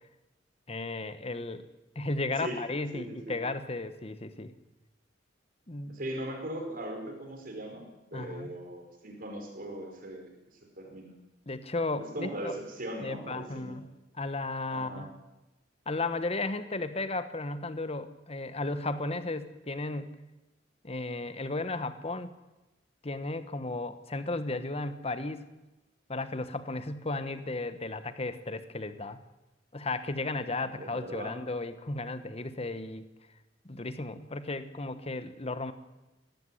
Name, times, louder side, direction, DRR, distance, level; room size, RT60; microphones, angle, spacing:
voice 1, 0.7-1.7 1.9-4.5 5.7-6.0 8.1-8.5 11.5-12.6 13.0-13.8 14.1-15.1 15.9-20.2 20.8-22.3 23.0-25.5 26.1-29.2 29.7-33.1 33.6-35.7, left 2 dB, 35° left, 12 dB, 1.3 m, -34 dB
voice 2, 2.9-3.4 5.9-11.1 12.0-13.8 14.7-15.1 30.8-31.3, right 1 dB, 50° right, 3 dB, 4.9 m, -39 dB
18.0 x 15.5 x 10.0 m, 1.0 s
head